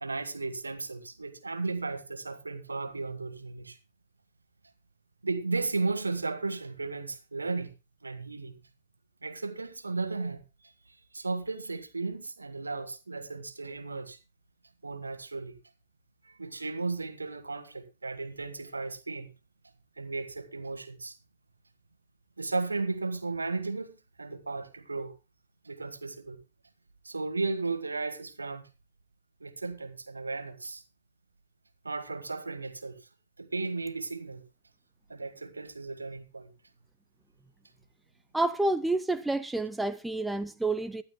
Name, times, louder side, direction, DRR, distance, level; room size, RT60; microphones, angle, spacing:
voice 1, 0.0-3.8 5.2-7.7 8.0-8.6 9.2-10.7 11.1-14.2 14.8-15.6 16.2-19.3 20.0-21.2 22.4-25.1 25.6-26.4 27.0-28.7 29.4-30.8 31.8-33.0 33.4-34.4 35.1-36.5, right 3 dB, 80° right, 1.5 m, -35 dB
voice 2, 38.3-41.0, right 2 dB, 5° right, 0.5 m, -29 dB
22.5 x 11.5 x 2.2 m
figure-of-eight pair, 105°, 0 cm